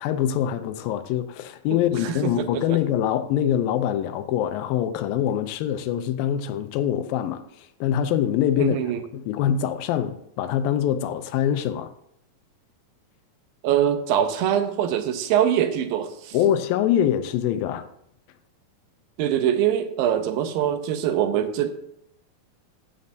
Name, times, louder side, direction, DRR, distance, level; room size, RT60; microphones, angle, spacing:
voice 1, 0.0-8.8 9.1-11.9 16.3-17.9, left 10 dB, 80° left, 2.4 m, -24 dB
voice 2, 2.0-2.8 8.6-9.0 13.6-16.4 19.2-21.7, right 10 dB, 80° right, 2.5 m, -23 dB
14.5 x 7.9 x 2.7 m
omnidirectional pair, 4.1 m